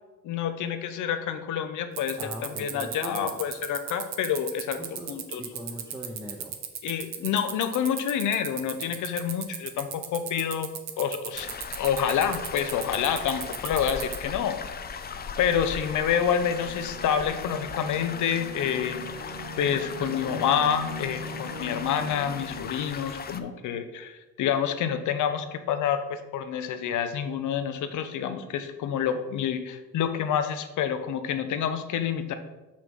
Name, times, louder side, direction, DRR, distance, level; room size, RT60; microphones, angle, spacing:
voice 1, 0.2-4.8 5.1-5.4 6.8-10.7 11.0-11.5 11.8-14.6 15.4-32.3, left 8 dB, 75° left, 9 dB, 0.7 m, -28 dB
sound 1, 2.0-14.2, right 9 dB, 65° right, 0.9 m, -35 dB
voice 2, 2.2-3.4 4.7-6.6, right 1 dB, 10° right, -2 dB, 1.0 m, -40 dB
sound 2, 8.6-8.9 14.8-22.7, equal, 80° right, 1.8 m, -41 dB
sound 3, 11.3-23.4, left 6 dB, 30° left, 0.5 m, -38 dB
6.3 x 5.9 x 3.7 m, 1.1 s
cardioid pair, 90°, 30 cm